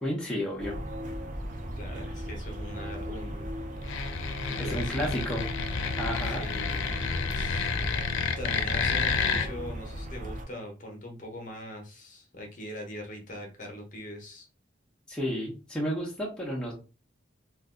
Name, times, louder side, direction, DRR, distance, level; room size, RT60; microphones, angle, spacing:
voice 1, 0.0-0.8 4.6-5.4 6.0-6.4 15.1-16.7, equal, 5° left, -4 dB, 0.7 m, -31 dB
sound 1, 0.6-10.5, equal, 40° right, 0.5 m, -37 dB
voice 2, 1.6-3.5 4.4-5.0 6.3-7.0 7.3-7.7 8.4-14.5, equal, 40° left, 1 dB, 0.8 m, -42 dB
sound 2, 3.8-9.5, left 5 dB, 85° left, 0.5 m, -30 dB
2.5 x 2.2 x 3.6 m, 0.33 s
head